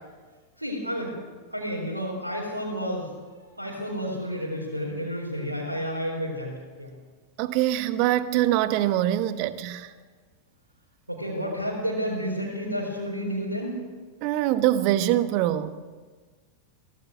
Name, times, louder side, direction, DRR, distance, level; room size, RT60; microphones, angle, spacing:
voice 1, 0.6-1.1 1.5-3.1 3.6-6.5 6.8-6.9 11.1-13.8, equal, 85° right, 4.4 m, -30 dB
voice 2, 7.4-9.9 14.2-15.7, right 13 dB, 45° right, 1.2 m, -24 dB
24.0 x 17.5 x 6.4 m
figure-of-eight pair, 90°, 0 cm